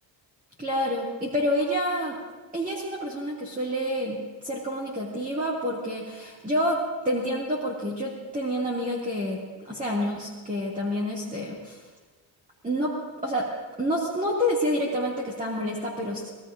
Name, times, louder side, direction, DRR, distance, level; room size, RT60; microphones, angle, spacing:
voice 1, 0.6-2.2 2.5-4.2 4.4-6.8 7.0-9.4 9.7-11.8 12.6-12.9 13.2-13.4 13.8-16.3, equal, 15° right, -5 dB, 2.3 m, -28 dB
25.5 x 19.0 x 2.6 m, 1.4 s
cardioid pair, 135°, 45 cm